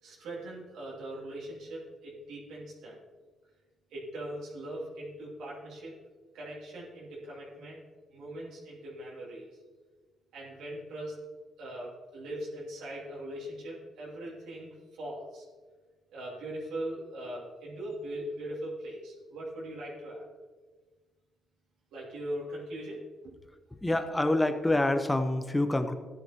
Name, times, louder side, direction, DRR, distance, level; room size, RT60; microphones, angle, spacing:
voice 1, 0.0-3.0 3.9-5.9 6.3-7.8 8.1-9.6 10.3-11.2 11.6-15.4 16.1-20.3 21.9-23.3, right 1 dB, 80° right, -5 dB, 2.7 m, -40 dB
voice 2, 23.8-25.9, left 1 dB, 10° left, 8 dB, 0.9 m, -26 dB
13.5 x 9.6 x 3.0 m, 1.4 s
cardioid pair, 90°, 0 cm